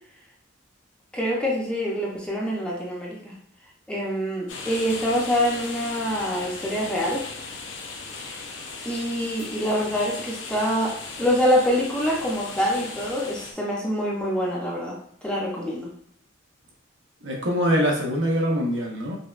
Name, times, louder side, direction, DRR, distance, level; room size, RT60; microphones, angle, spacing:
voice 1, 1.1-3.3 3.9-7.2 8.3-8.4 8.8-15.0 15.2-15.9, equal, 5° left, -4 dB, 0.5 m, -25 dB
sound 1, 4.5-13.5, left 4 dB, 70° left, 0.6 m, -37 dB
voice 2, 17.2-19.2, equal, 65° right, -1 dB, 0.8 m, -23 dB
5.1 x 2.2 x 2.4 m, 0.69 s
head